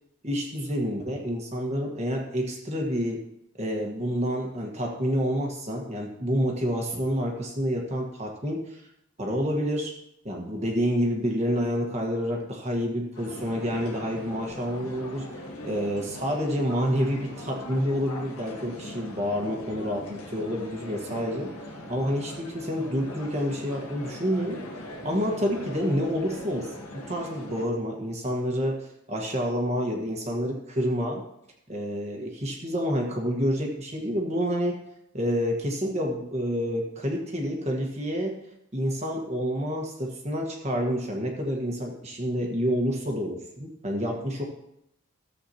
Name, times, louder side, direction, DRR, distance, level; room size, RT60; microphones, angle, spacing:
voice 1, 0.2-3.2 3.6-8.8 9.2-9.9 10.2-15.3 15.6-21.6 21.9-24.6 25.0-31.2 31.7-34.8 35.1-38.4 38.7-44.4, equal, 30° right, 1 dB, 1.4 m, -28 dB
sound 1, 13.1-27.7, left 1 dB, 90° left, 1.5 m, -41 dB
14.5 x 7.7 x 2.9 m, 0.78 s
head